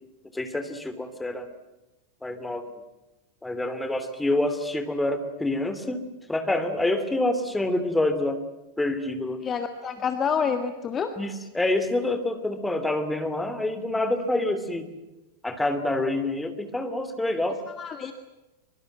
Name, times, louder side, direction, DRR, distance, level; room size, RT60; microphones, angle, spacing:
voice 1, 0.3-1.5 2.2-2.7 3.4-6.0 6.3-8.4 8.8-9.4 11.2-14.9 15.4-17.6, left 2 dB, 5° left, 8 dB, 3.0 m, -27 dB
voice 2, 9.4-11.1 17.8-18.1, left 6 dB, 25° left, 7 dB, 1.8 m, -27 dB
24.0 x 23.5 x 9.3 m, 1.0 s
figure-of-eight pair, 90°, 0 cm